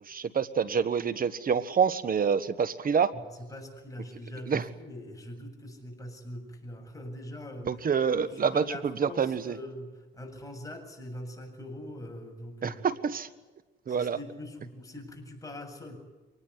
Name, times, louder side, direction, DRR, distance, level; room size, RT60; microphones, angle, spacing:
voice 1, 0.0-3.1 4.5-4.6 7.6-8.6 9.0-9.5 12.6-13.3 13.9-14.2, right 6 dB, 45° right, 14 dB, 1.5 m, -27 dB
voice 2, 3.1-7.7 8.1-12.9 13.9-16.0, left 1 dB, 15° left, 3 dB, 7.8 m, -42 dB
24.5 x 19.5 x 9.8 m, 1.2 s
cardioid pair, 90°, 20 cm